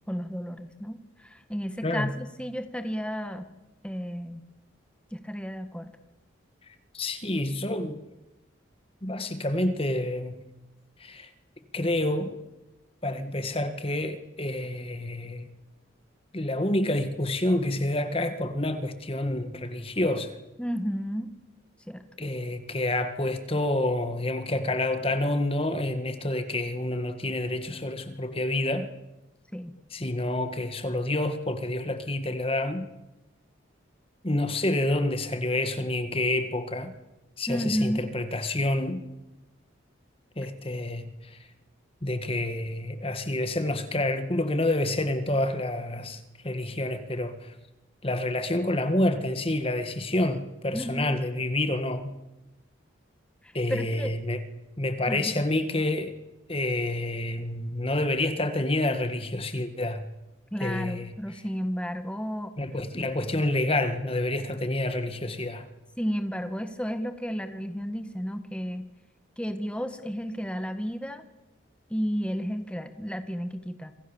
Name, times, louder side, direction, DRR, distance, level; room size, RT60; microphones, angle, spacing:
voice 1, 0.1-3.5 3.8-4.4 5.1-5.9 20.6-21.3 21.9-22.1 29.5-29.7 37.5-38.1 50.7-51.2 53.4-54.1 55.1-55.4 60.5-62.5 66.0-68.9 69.4-71.2 71.9-73.9, equal, 5° left, 1.8 m, -32 dB
voice 2, 6.9-8.0 9.0-10.4 11.0-11.3 11.7-12.4 13.0-15.5 16.3-20.4 22.2-28.9 29.9-32.9 34.2-36.9 37.4-39.1 40.4-41.1 42.0-47.5 48.0-52.1 53.5-54.4 54.8-56.1 56.5-60.1 60.6-61.1 62.6-65.7, left 1 dB, 30° left, 1.8 m, -28 dB
27.5 x 26.5 x 7.3 m
head